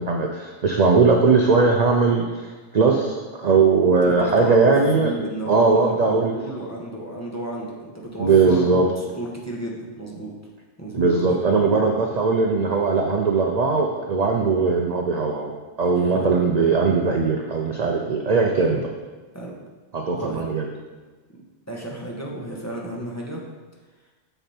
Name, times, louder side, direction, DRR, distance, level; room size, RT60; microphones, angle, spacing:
voice 1, 0.0-6.3 8.2-8.9 10.9-15.5 15.8-18.8 19.9-20.7, right 4 dB, 45° right, 1 dB, 0.6 m, -19 dB
voice 2, 4.0-10.3 10.8-11.4 15.9-16.3 18.5-18.8 19.3-19.6 20.2-20.5 21.7-23.4, right 1 dB, 15° left, -3 dB, 1.2 m, -33 dB
7.1 x 6.7 x 4.4 m, 1.3 s
omnidirectional pair, 1.2 m